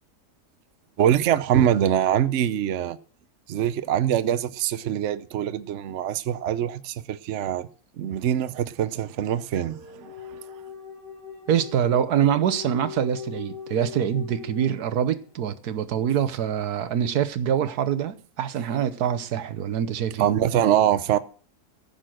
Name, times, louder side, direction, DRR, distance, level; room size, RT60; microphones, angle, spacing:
voice 1, 1.0-3.0 3.5-7.7 8.0-10.1 20.2-21.2, right 10 dB, 55° right, 0.9 m, -23 dB
sound 1, 8.9-15.2, left 8 dB, 30° right, 2.4 m, -40 dB
voice 2, 11.5-20.3, right 9 dB, 75° right, 1.4 m, -25 dB
14.5 x 6.6 x 7.6 m
omnidirectional pair, 1.7 m